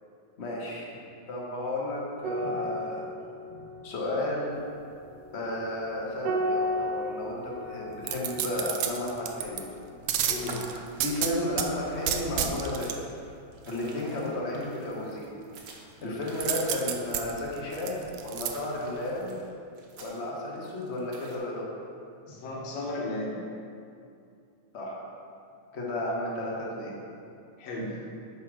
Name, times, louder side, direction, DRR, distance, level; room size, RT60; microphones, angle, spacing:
voice 1, 0.4-0.9 1.3-3.1 3.8-4.5 5.3-9.6 11.0-13.0 13.6-15.3 16.0-19.4 20.0-21.7 24.7-25.0 25.7-26.9, left 1 dB, 40° left, -4 dB, 0.9 m, -33 dB
sound 1, 2.2-10.9 11.2-11.4, equal, 75° right, 1.6 m, -35 dB
sound 2, 8.0-9.6 10.1-11.7 12.1-13.0 16.4-18.5 19.0-19.1, right 9 dB, 90° right, 1.3 m, -30 dB
sound 3, 9.8-21.4, right 2 dB, 55° right, 1.9 m, -49 dB
voice 2, 10.3-10.6 22.3-23.4 27.6-28.1, left 2 dB, 60° left, -4 dB, 2.5 m, -34 dB
9.3 x 4.9 x 6.3 m, 2.5 s
omnidirectional pair, 3.4 m